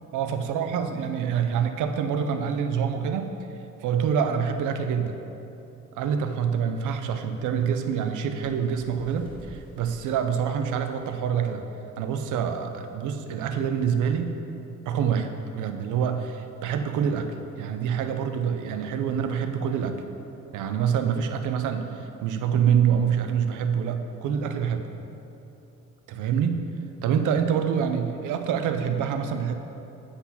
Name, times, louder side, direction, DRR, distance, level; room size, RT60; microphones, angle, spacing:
voice 1, 0.1-3.3 3.8-5.2 5.9-11.6 12.0-14.4 14.9-17.3 17.6-19.9 20.5-24.8 26.1-26.7 27.0-29.5, right 7 dB, 85° right, 7 dB, 0.6 m, -26 dB
Bird, 8.4-11.5 12.0-12.2 12.5-12.7 13.5-13.6, left 1 dB, 15° right, 1.8 m, -50 dB
8.0 x 4.1 x 5.7 m, 2.9 s
cardioid pair, 90°, 30 cm